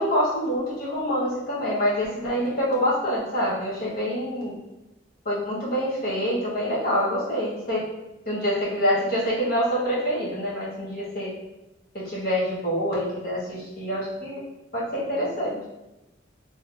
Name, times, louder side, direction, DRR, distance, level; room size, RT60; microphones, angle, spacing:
voice 1, 0.0-4.6 5.2-7.9 8.3-11.3 11.9-14.4 14.7-15.6, equal, 50° left, -7 dB, 1.1 m, -26 dB
3.2 x 2.9 x 2.5 m, 0.99 s
head